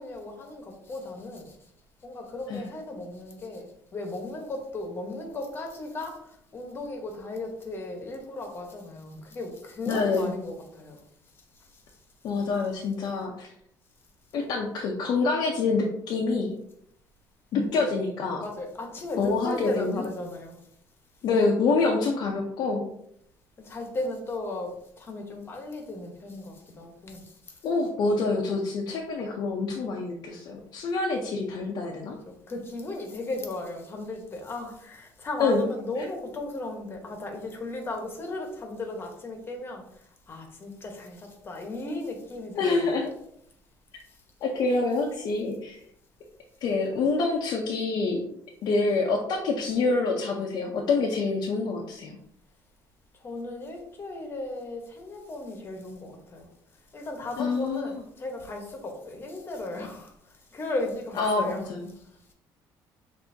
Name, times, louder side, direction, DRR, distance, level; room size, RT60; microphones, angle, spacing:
voice 1, 0.0-1.6 2.0-11.0 18.4-20.6 23.6-27.3 32.2-39.8 40.3-43.0 53.2-56.5 56.9-60.1 60.5-61.7, left 2 dB, 30° left, 1.1 m, -36 dB
voice 2, 9.9-10.3 12.2-13.5 14.3-16.5 17.5-18.4 19.2-20.0 21.2-22.9 27.6-32.2 35.4-35.7 36.0-36.1 42.6-43.1 44.4-45.8 46.6-48.2 48.6-52.2 57.4-57.9 61.2-61.9, left 3 dB, 60° left, 0.7 m, -26 dB
6.8 x 2.7 x 2.7 m
cardioid pair, 140°, 8 cm